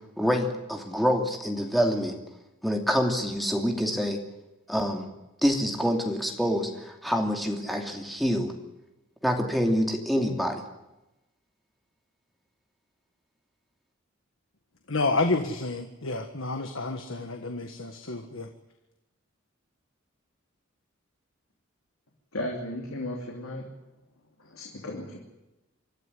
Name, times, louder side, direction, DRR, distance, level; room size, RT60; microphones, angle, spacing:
voice 1, 0.2-2.2 2.6-4.2 4.7-5.1 5.4-8.5 9.2-10.6, equal, ahead, 2 dB, 2.7 m, -26 dB
voice 2, 14.9-18.5, left 3 dB, 70° left, 6 dB, 1.6 m, -29 dB
voice 3, 22.3-23.7 24.4-25.2, left 1 dB, 90° left, 0 dB, 3.2 m, -35 dB
25.5 x 13.5 x 9.9 m, 0.98 s
head